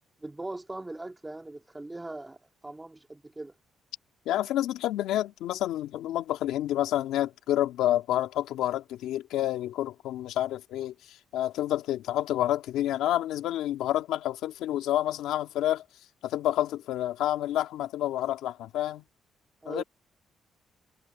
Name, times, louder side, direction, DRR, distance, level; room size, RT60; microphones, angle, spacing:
voice 1, 0.2-2.4 2.6-3.5 19.6-19.8, right 2 dB, 15° right, 2.4 m, -40 dB
voice 2, 4.3-15.8 16.2-19.0 19.7-19.8, left 13 dB, 90° left, 2.3 m, -29 dB
cardioid pair, 90°, 0 cm